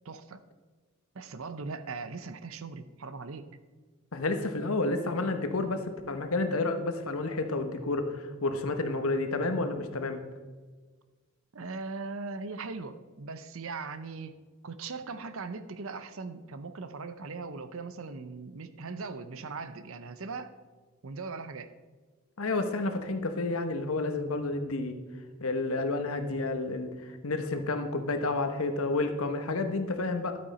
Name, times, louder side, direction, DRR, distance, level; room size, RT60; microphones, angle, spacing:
voice 1, 0.0-0.4 1.1-3.5 11.5-14.4 14.6-20.5 21.0-21.7, right 4 dB, 65° right, 11 dB, 0.7 m, -39 dB
voice 2, 4.1-10.2 22.4-25.0 25.4-30.4, left 2 dB, 70° left, 7 dB, 1.1 m, -30 dB
12.0 x 8.6 x 4.3 m, 1.4 s
head